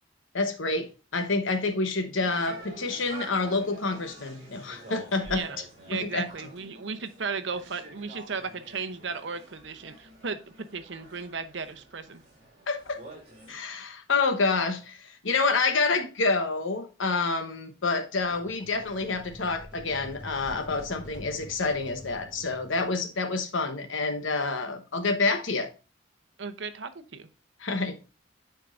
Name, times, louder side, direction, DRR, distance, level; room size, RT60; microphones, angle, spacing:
voice 1, 0.3-5.4 5.9-6.3 12.7-13.0 13.5-25.7 27.6-28.0, left 3 dB, 85° left, 1.1 m, -28 dB
sound 1, 2.1-13.5, right 2 dB, 35° right, 2.9 m, -48 dB
voice 2, 5.9-12.2 13.5-13.6 26.4-27.3, right 5 dB, 70° right, 0.8 m, -35 dB
sound 2, 18.1-23.0, left 1 dB, 5° right, 2.4 m, -46 dB
10.5 x 4.5 x 2.5 m
head